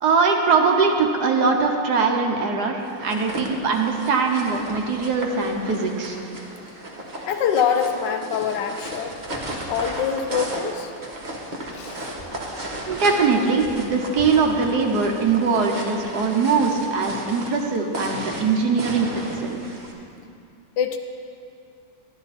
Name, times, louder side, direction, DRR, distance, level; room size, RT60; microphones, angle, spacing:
voice 1, 0.0-6.2 12.9-19.1 19.4-19.7, right 4 dB, 65° right, 2 dB, 1.4 m, -21 dB
sound 1, 2.9-19.9, right 1 dB, 30° right, 1.2 m, -35 dB
voice 2, 7.2-9.1 9.7-10.9 11.7-12.1 20.8-21.0, left 7 dB, 75° left, 6 dB, 1.3 m, -24 dB
12.0 x 11.0 x 4.1 m, 2.5 s
omnidirectional pair, 2.0 m